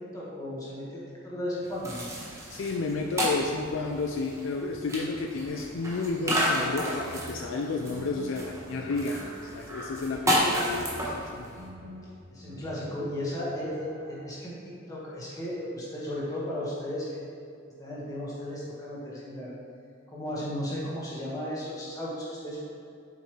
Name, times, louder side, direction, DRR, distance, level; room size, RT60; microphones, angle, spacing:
voice 1, 0.1-2.1 12.3-14.6 14.9-17.2 17.8-19.5 20.1-22.7, left 1 dB, 15° left, -7 dB, 1.6 m, -35 dB
sound 1, 1.6-11.7, equal, 15° right, 1.1 m, -32 dB
voice 2, 2.5-11.5, left 3 dB, 75° left, 2 dB, 0.4 m, -32 dB
sound 2, 6.9-14.3, equal, 70° right, 0.9 m, -47 dB
7.7 x 5.3 x 3.2 m, 2.5 s
head